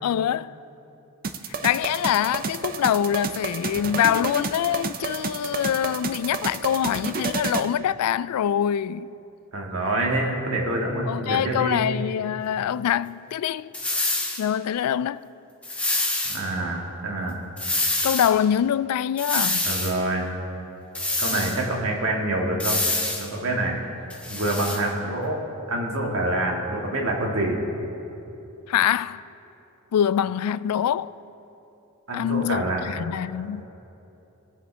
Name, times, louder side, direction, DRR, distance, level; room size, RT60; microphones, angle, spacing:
voice 1, 0.0-0.5 1.6-9.1 11.1-13.7 14.4-15.2 18.0-19.7 28.7-29.2 29.9-31.1 32.1-33.7, left 9 dB, 85° left, 0.3 m, -24 dB
sound 1, 1.2-7.7, right 4 dB, 40° right, 0.5 m, -30 dB
voice 2, 9.5-11.9 16.3-17.4 19.6-20.3 21.2-22.8 23.2-23.8 24.3-25.4 25.7-27.6 32.1-32.9, right 1 dB, 60° right, 1.7 m, -26 dB
sound 2, 13.7-14.4 15.6-16.4 17.6-18.3 19.2-19.9 20.9-21.6 22.6-23.3 24.1-24.8, left 2 dB, 5° left, 1.1 m, -26 dB
21.5 x 7.5 x 3.4 m
head